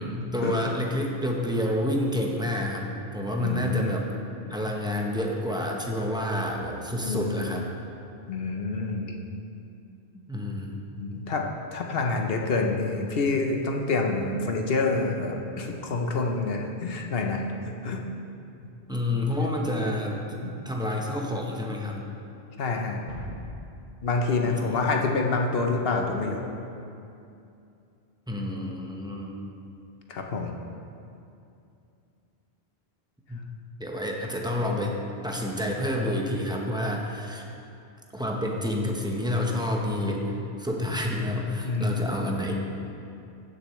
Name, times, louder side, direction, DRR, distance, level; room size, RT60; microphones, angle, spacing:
voice 1, 0.0-4.1 4.5-7.7 10.3-10.9 18.9-20.2 20.6-22.0 24.4-24.8 28.3-29.4 33.3-33.4 33.8-37.4 38.1-42.5, left 1 dB, 5° right, -1 dB, 0.8 m, -29 dB
voice 2, 3.4-3.9 7.0-7.5 8.3-9.2 11.0-11.4 11.7-17.4 17.8-18.0 20.4-20.5 22.6-23.0 24.0-26.4 30.1-30.6 41.6-41.9, left 3 dB, 65° left, 2 dB, 1.1 m, -27 dB
sound 1, 23.1-25.6, right 1 dB, 45° right, 1.8 m, -43 dB
15.0 x 6.9 x 3.2 m, 2.6 s
omnidirectional pair, 1.1 m